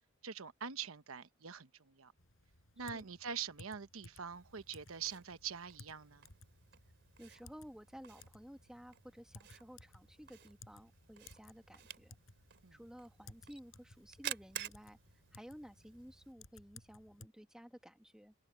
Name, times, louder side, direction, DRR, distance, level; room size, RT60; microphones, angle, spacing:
voice 1, 0.2-2.1 2.8-6.3 12.6-12.8, right 7 dB, 90° right, 1.0 m, -44 dB
Typing, 2.2-17.3, left 3 dB, 70° left, 6.4 m, -60 dB
Camera, 4.3-16.3, right 10 dB, 60° right, 3.6 m, -52 dB
voice 2, 7.2-12.2 12.7-15.0 15.3-18.3, equal, 5° right, 1.6 m, -54 dB
head